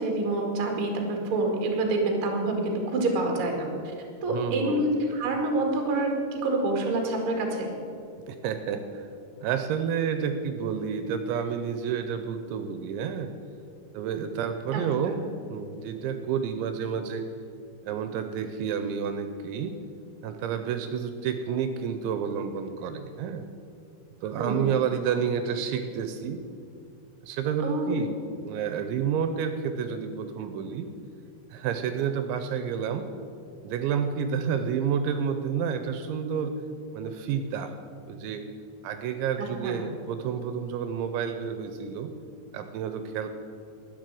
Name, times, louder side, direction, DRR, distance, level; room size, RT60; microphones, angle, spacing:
voice 1, 0.0-3.7 4.2-7.7 14.7-14.8 24.4-24.7 27.6-28.0 39.6-39.8, right 2 dB, 45° right, 2 dB, 1.8 m, -27 dB
voice 2, 4.3-4.8 8.3-9.1 9.4-13.3 13.9-17.2 17.8-19.8 20.2-23.5 24.2-26.4 27.2-28.1 28.4-30.9 31.5-33.1 33.6-36.6 36.9-37.7 38.1-38.4 38.8-42.1 42.5-43.3, right 7 dB, 80° right, 8 dB, 2.9 m, -30 dB
12.5 x 9.5 x 7.6 m, 2.6 s
omnidirectional pair, 5.5 m